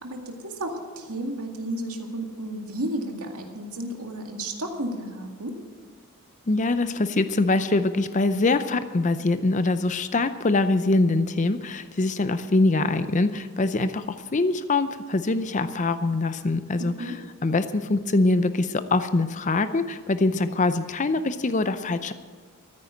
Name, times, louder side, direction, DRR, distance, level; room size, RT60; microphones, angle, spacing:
voice 1, 0.0-5.6 16.8-17.2, right 1 dB, 85° right, 3 dB, 2.1 m, -33 dB
voice 2, 6.5-17.1 17.4-22.1, left 2 dB, 35° left, 11 dB, 0.5 m, -23 dB
14.0 x 9.7 x 7.8 m, 1.5 s
head